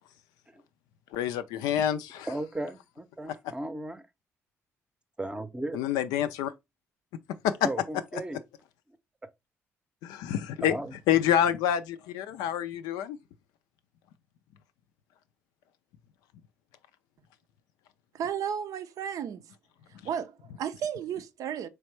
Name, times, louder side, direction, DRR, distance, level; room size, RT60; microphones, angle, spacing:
voice 1, 1.1-2.3 5.7-6.5 10.0-10.7 11.1-13.2, left 10 dB, 65° left, 0.4 m, -27 dB
voice 2, 2.3-4.1 5.2-5.8 7.6-8.4 10.6-10.9, right 1 dB, 15° right, 0.6 m, -35 dB
voice 3, 18.1-19.5 19.9-21.7, right 8 dB, 55° right, 0.4 m, -33 dB
4.1 x 3.3 x 3.1 m
figure-of-eight pair, 45°, 7 cm